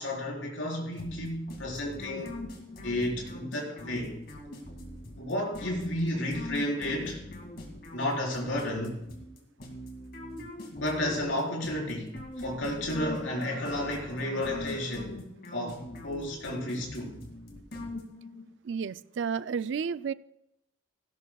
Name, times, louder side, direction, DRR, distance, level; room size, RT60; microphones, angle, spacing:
voice 1, 0.0-2.4 2.8-4.2 5.2-7.2 7.9-9.0 10.7-15.2 15.5-17.2, left 1 dB, 75° left, -1 dB, 4.4 m, -32 dB
sound 1, 1.0-18.5, left 1 dB, 50° left, 2.3 m, -42 dB
voice 2, 18.6-20.1, right 6 dB, 65° right, 16 dB, 0.4 m, -31 dB
18.0 x 17.0 x 2.3 m, 0.84 s
head